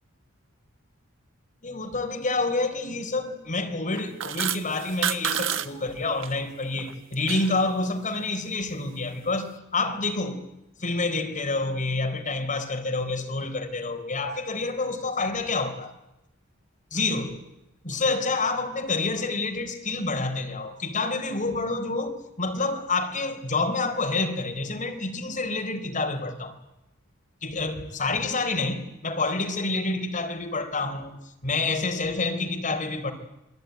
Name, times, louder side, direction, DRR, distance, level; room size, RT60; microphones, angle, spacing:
voice 1, 1.6-10.4 10.8-15.9 16.9-17.3 17.8-26.5 27.4-31.1 31.4-33.1, left 3 dB, 40° left, 5 dB, 4.0 m, -28 dB
sound 1, 3.9-5.7 5.9-6.3 6.7-7.6, right 9 dB, 65° right, 1.3 m, -29 dB
28.0 x 22.5 x 9.4 m, 0.92 s
head